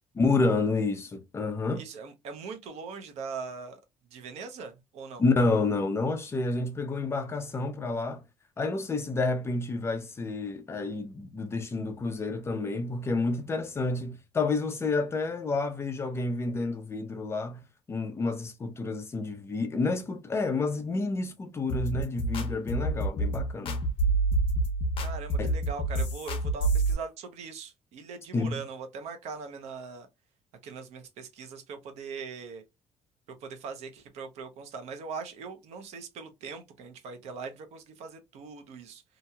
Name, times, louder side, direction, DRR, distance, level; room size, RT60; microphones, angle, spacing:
voice 1, 0.1-1.9 5.2-8.2 8.6-23.8 25.4-25.5 28.3-28.6, left 3 dB, 20° left, 0.6 m, -29 dB
voice 2, 1.7-3.8 4.1-5.2 25.0-30.1 30.6-32.6 33.4-39.0, right 5 dB, 70° right, 0.8 m, -41 dB
sound 1, 21.7-26.9, right 2 dB, 50° left, 0.8 m, -27 dB
2.8 x 2.7 x 2.3 m
cardioid pair, 140°, 11 cm